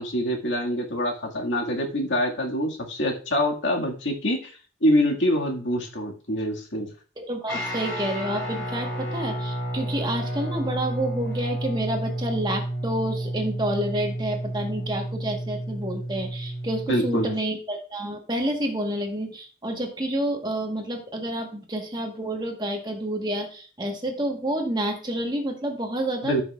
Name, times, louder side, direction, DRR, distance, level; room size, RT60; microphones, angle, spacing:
voice 1, 0.0-4.5 4.8-6.9 16.9-17.3 26.2-26.4, equal, 65° left, 0 dB, 1.9 m, -25 dB
voice 2, 7.2-26.4, right 1 dB, 20° right, 3 dB, 1.3 m, -29 dB
Guitar, 7.5-17.3, right 1 dB, 15° left, 5.0 m, -31 dB
14.0 x 6.3 x 2.4 m, 0.38 s
head